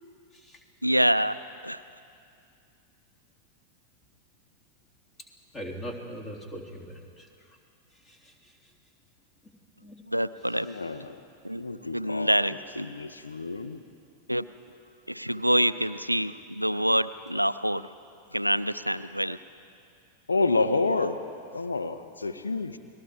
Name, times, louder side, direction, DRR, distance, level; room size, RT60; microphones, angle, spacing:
voice 1, 0.8-1.3 1.6-1.8 10.1-10.7 11.4-12.9 14.3-14.4 15.1-17.9 18.3-19.4, equal, 90° right, 0.5 m, -26 dB
voice 2, 5.5-7.3 8.0-8.5 9.4-9.5 9.8-10.0 10.6-10.9 21.3-21.4 22.2-22.3, equal, 20° left, 3.3 m, -41 dB
voice 3, 10.6-11.2 11.5-12.4 12.7-13.8 16.1-16.3 20.3-21.2 21.5-22.8, left 3 dB, 75° left, 0.9 m, -29 dB
29.5 x 20.5 x 4.8 m
figure-of-eight pair, 90°, 0 cm